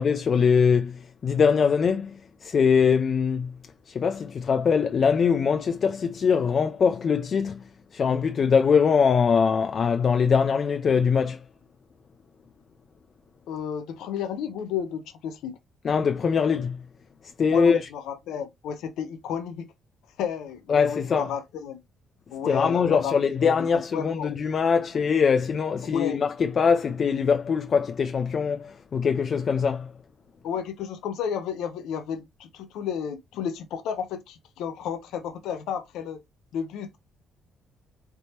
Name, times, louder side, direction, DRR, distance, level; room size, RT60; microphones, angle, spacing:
voice 1, 0.0-3.5 3.9-7.6 7.9-11.4 15.8-16.8 17.2-17.8 20.7-21.3 22.5-29.9, left 6 dB, 40° left, 0.3 m, -22 dB
voice 2, 13.5-15.6 17.5-19.7 20.2-21.8 22.3-23.5 23.9-24.3 25.9-26.2 30.4-36.2 36.5-36.9, left 8 dB, 90° left, 0.5 m, -32 dB
4.3 x 3.3 x 2.8 m
cardioid pair, 150°, 0 cm